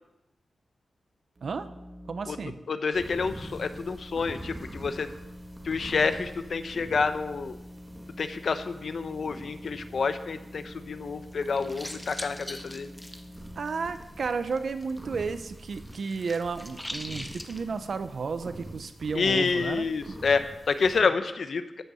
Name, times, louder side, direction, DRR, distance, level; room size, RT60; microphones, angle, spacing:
sound 1, 1.4-2.5 3.0-13.9, equal, 40° right, 2.0 m, -46 dB
voice 1, 2.1-2.6 13.6-20.2, right 5 dB, 60° right, 11 dB, 0.8 m, -33 dB
voice 2, 2.7-5.1 5.6-7.6 8.2-12.9 19.1-21.6, left 5 dB, 60° left, 10 dB, 0.9 m, -28 dB
sound 2, 2.9-21.0, right 1 dB, 10° right, 2.1 m, -46 dB
sound 3, 11.3-15.0 15.3-17.6, left 1 dB, 10° left, 1.0 m, -42 dB
13.0 x 6.7 x 7.7 m, 0.94 s
wide cardioid pair, 130°, 0 cm